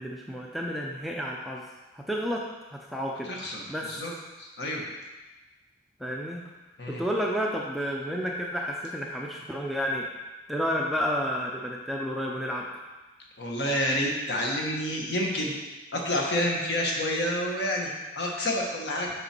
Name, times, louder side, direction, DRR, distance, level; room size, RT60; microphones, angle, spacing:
voice 1, 0.0-1.6 2.1-2.4 2.9-3.3 3.7-3.9 6.0-6.4 7.0-10.1 10.5-12.6, equal, ahead, -2 dB, 0.5 m, -30 dB
voice 2, 3.2-4.1 4.4-4.8 6.8-7.0 13.4-15.5 15.9-17.9 18.2-19.1, left 1 dB, 55° left, -1 dB, 1.3 m, -28 dB
6.7 x 6.1 x 4.4 m, 1.2 s
head